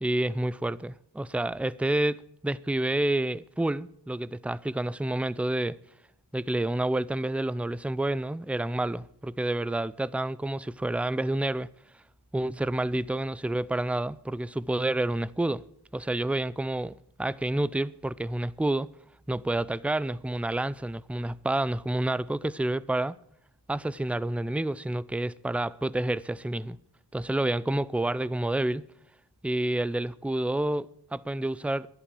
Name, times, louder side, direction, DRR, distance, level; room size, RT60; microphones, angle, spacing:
voice 1, 0.0-2.2 2.4-5.8 6.3-11.7 12.3-15.6 15.9-18.9 19.3-23.2 23.7-26.8 27.1-28.8 29.4-31.9, right 1 dB, 5° right, 0.5 m, -29 dB
11.5 x 11.5 x 7.6 m
wide cardioid pair, 50°, 41 cm